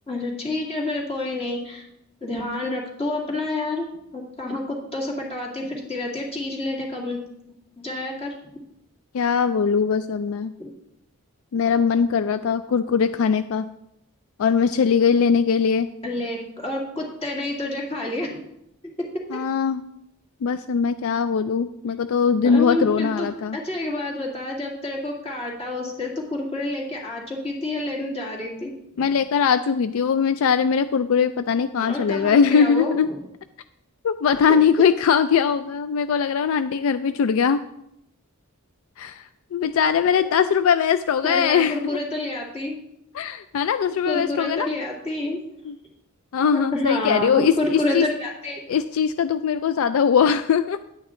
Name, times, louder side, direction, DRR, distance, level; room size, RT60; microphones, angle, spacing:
voice 1, 0.1-1.9 2.2-3.8 4.1-7.2 7.8-8.4 10.6-10.7 16.0-18.5 22.4-23.3 23.5-29.0 31.8-33.2 41.2-42.8 44.1-45.4 46.5-48.6, left 2 dB, 25° left, -1 dB, 2.1 m, -28 dB
voice 2, 9.1-10.5 11.5-13.7 14.4-15.9 19.3-19.8 20.4-23.6 29.0-33.1 34.0-37.6 39.0-42.0 43.1-44.7 45.7-45.8 46.3-47.5 47.9-48.1 48.7-50.8, left 6 dB, 65° left, 12 dB, 0.3 m, -21 dB
10.0 x 8.8 x 3.7 m, 0.81 s
head